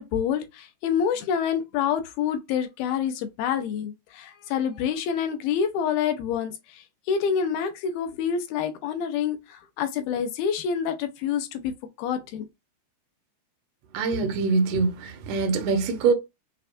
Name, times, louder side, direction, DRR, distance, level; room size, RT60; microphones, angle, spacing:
voice 1, 0.0-11.7 12.0-12.5, left 7 dB, 80° left, 2.5 m, -27 dB
voice 2, 13.9-16.1, right 4 dB, 80° right, 1.5 m, -24 dB
6.5 x 2.3 x 2.5 m
omnidirectional pair, 4.5 m